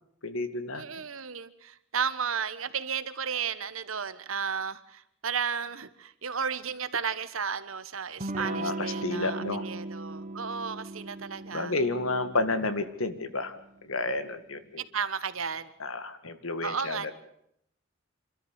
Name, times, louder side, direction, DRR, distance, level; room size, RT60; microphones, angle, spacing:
voice 1, 0.2-1.0 8.5-9.7 11.5-14.8 15.8-17.1, left 2 dB, 90° left, 11 dB, 1.9 m, -31 dB
voice 2, 0.7-11.7 14.8-15.7 16.6-17.1, right 6 dB, 85° right, 13 dB, 1.4 m, -33 dB
Electric guitar / Strum, 8.2-13.6, right 2 dB, 35° right, 1.0 m, -38 dB
27.0 x 13.5 x 8.2 m, 0.73 s
head